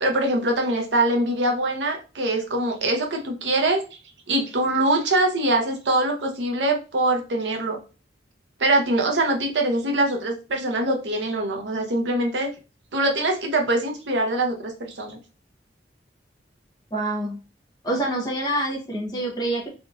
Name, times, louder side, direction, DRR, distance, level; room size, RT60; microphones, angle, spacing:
voice 1, 0.0-3.8 4.3-7.8 8.6-12.5 12.9-15.2, right 2 dB, 80° right, 2 dB, 0.8 m, -23 dB
voice 2, 16.9-17.4 17.8-19.7, right 1 dB, 20° left, -2 dB, 0.8 m, -26 dB
3.6 x 2.3 x 2.5 m, 0.32 s
head